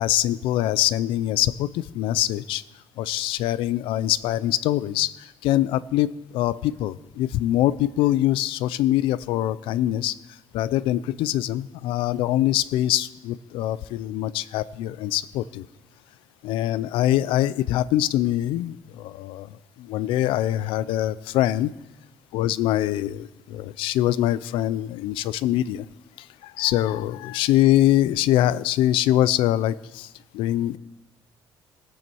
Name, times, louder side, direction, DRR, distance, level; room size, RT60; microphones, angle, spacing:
voice 1, 0.0-2.6 3.0-10.1 10.5-15.6 16.4-19.5 19.8-21.7 22.3-25.9 26.4-30.1 30.3-30.8, left 13 dB, 80° left, 17 dB, 0.5 m, -23 dB
19.5 x 9.1 x 4.6 m, 0.99 s
cardioid pair, 165°, 9 cm